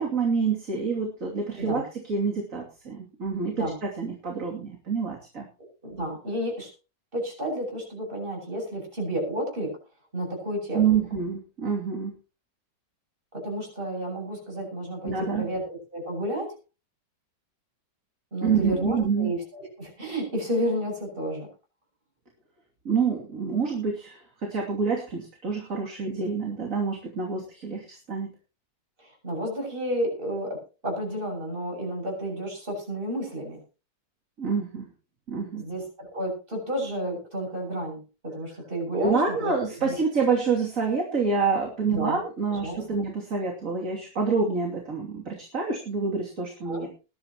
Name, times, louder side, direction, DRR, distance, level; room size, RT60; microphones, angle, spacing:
voice 1, 0.0-5.5 10.7-12.1 15.0-15.5 18.4-19.3 22.8-28.3 34.4-34.9 35.3-35.6 38.9-46.9, right 5 dB, 45° right, 0 dB, 3.1 m, -27 dB
voice 2, 5.8-6.7 7.1-9.8 10.1-11.0 13.3-16.5 18.3-21.5 29.0-33.6 35.5-39.6 39.8-40.0 41.8-42.2 42.6-42.8 46.6-46.9, right 1 dB, 30° right, 0 dB, 8.2 m, -31 dB
20.5 x 12.0 x 3.0 m, 0.32 s
omnidirectional pair, 2.0 m